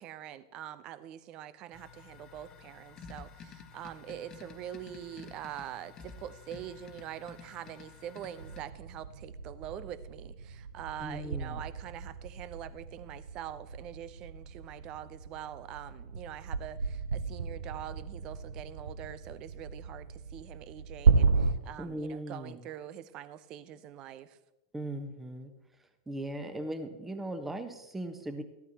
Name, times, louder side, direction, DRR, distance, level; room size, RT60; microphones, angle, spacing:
voice 1, 0.0-24.4, right 11 dB, 40° right, 14 dB, 0.8 m, -44 dB
sound 1, 1.7-8.6, left 5 dB, 30° left, 1.3 m, -50 dB
sound 2, 8.4-21.5, right 5 dB, 75° right, 0.8 m, -33 dB
voice 2, 11.0-11.6 21.8-22.6 24.7-25.5 26.1-28.4, right 1 dB, 10° right, 7 dB, 1.3 m, -38 dB
15.0 x 12.0 x 3.0 m, 0.99 s
figure-of-eight pair, 95°, 2 cm